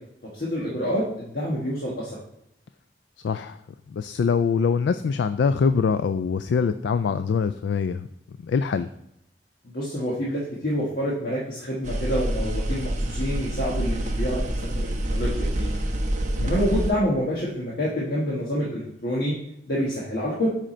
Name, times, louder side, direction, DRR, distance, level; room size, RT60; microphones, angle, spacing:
voice 1, 0.3-2.2 9.6-15.8 16.4-19.3 19.7-20.5, equal, 60° left, -5 dB, 1.4 m, -27 dB
voice 2, 3.2-3.6 3.9-8.1 8.4-8.9 16.4-16.5, left 5 dB, 80° left, 11 dB, 0.3 m, -24 dB
sound 1, 11.8-16.9, right 1 dB, 45° right, 1.0 m, -27 dB
7.6 x 5.1 x 4.3 m, 0.80 s
head